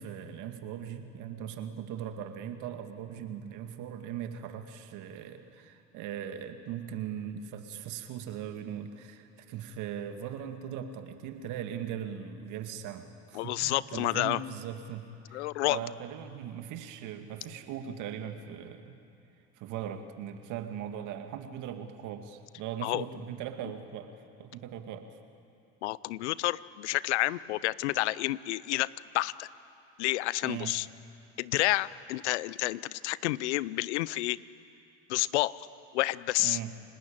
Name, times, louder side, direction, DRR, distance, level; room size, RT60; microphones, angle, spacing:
voice 1, 0.0-19.0 19.6-25.2 30.4-30.7 36.4-36.7, right 9 dB, 65° right, 7 dB, 2.2 m, -39 dB
voice 2, 13.3-14.4 15.3-15.8 22.8-23.0 25.8-29.5 30.0-30.9 31.4-34.4 35.1-35.7 35.9-36.6, left 17 dB, 85° left, 20 dB, 0.7 m, -30 dB
29.5 x 19.5 x 8.9 m, 2.8 s
hypercardioid pair, 80°, 33 cm